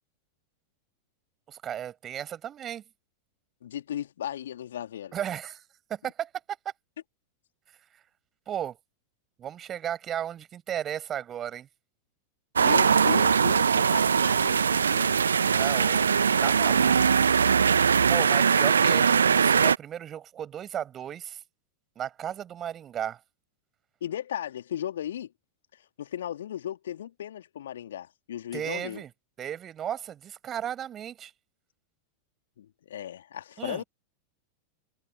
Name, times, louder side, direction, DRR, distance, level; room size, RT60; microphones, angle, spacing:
voice 1, 1.5-2.8 5.1-5.6 5.9-6.3 7.9-8.0 8.5-8.8 9.4-11.7 15.5-16.1 16.4-17.0 18.1-21.4 21.9-23.2 28.5-29.1 29.4-31.3 33.6-33.8, right 10 dB, 25° right, 6.5 m, -35 dB
voice 2, 3.6-5.1 12.6-15.2 24.0-25.3 25.7-29.0 32.6-33.8, left 10 dB, 60° left, 2.7 m, -36 dB
sound 1, 12.6-19.8, right 6 dB, 70° right, 0.9 m, -21 dB
figure-of-eight pair, 90°, 0 cm